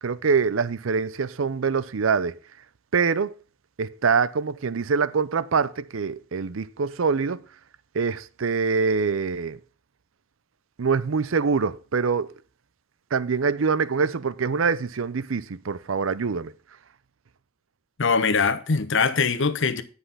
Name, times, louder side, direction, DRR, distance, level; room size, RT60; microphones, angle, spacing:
voice 1, 0.0-2.4 2.9-3.4 3.8-7.4 7.9-9.6 10.8-12.3 13.1-16.5, right 5 dB, 80° right, 0.6 m, -24 dB
voice 2, 18.0-19.8, left 5 dB, 65° left, 0.9 m, -22 dB
10.0 x 5.6 x 5.5 m
head